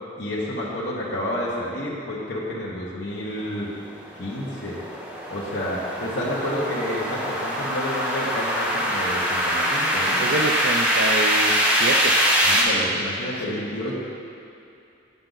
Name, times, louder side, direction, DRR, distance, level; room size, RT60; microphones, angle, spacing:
voice 1, 0.2-3.7 4.2-4.8 5.3-10.2 12.4-13.9, left 1 dB, 70° left, -7 dB, 1.2 m, -29 dB
sound 1, 3.5-12.6, equal, 10° right, 0.9 m, -23 dB
voice 2, 10.2-12.2 13.5-13.6, right 2 dB, 65° right, 2 dB, 0.5 m, -27 dB
8.7 x 6.7 x 3.9 m, 2.6 s
head